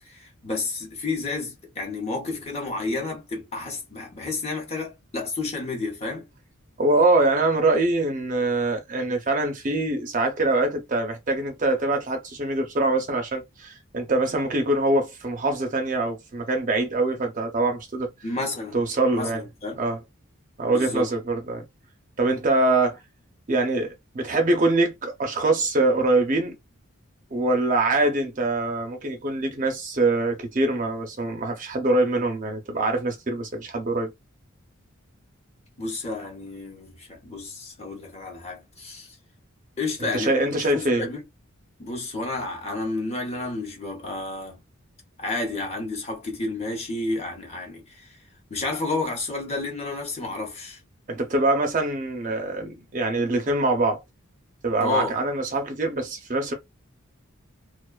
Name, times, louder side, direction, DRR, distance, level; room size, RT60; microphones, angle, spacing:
voice 1, 0.0-6.3 18.2-18.8 19.1-19.8 20.7-21.1 35.8-39.2 39.8-41.2 41.8-44.6 45.2-48.2 48.5-50.8 54.8-55.1, left 3 dB, 30° left, 0.8 m, -31 dB
voice 2, 6.8-18.1 18.7-19.4 19.8-20.0 20.6-21.6 22.2-23.0 23.5-26.6 27.3-34.1 40.1-41.1 51.1-54.0 54.6-56.5, right 2 dB, 35° right, 0.5 m, -24 dB
2.4 x 2.2 x 2.3 m
head